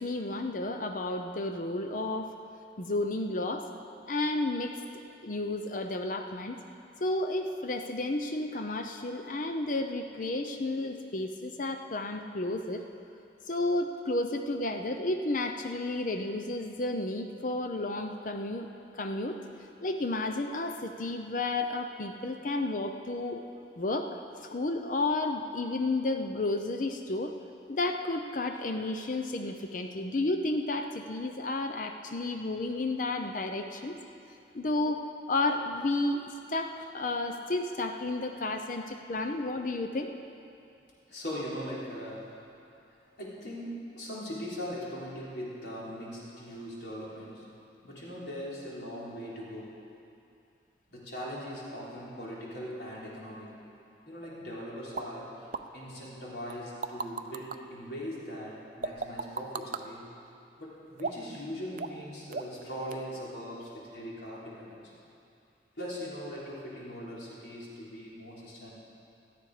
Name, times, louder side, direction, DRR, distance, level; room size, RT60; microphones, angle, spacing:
voice 1, 0.0-2.3 2.8-3.7 4.1-4.7 5.2-6.6 7.0-12.8 13.5-18.7 18.9-19.4 19.8-23.4 23.8-24.2 24.4-27.3 27.7-34.0 34.5-40.1, left 2 dB, 50° left, 6 dB, 0.7 m, -32 dB
voice 2, 41.1-42.4 42.9-47.5 47.8-49.8 50.9-53.5 54.1-55.5 55.7-60.1 60.6-64.8 65.8-68.7, equal, 80° left, -6 dB, 3.7 m, -40 dB
sound 1, 55.0-55.1 55.5-55.6 56.5-57.6 58.8-59.8 61.0-61.4 61.8-62.0 62.3-62.6 62.9-63.0, right 4 dB, 50° right, 0.5 m, -35 dB
17.0 x 13.0 x 5.0 m, 2.6 s
head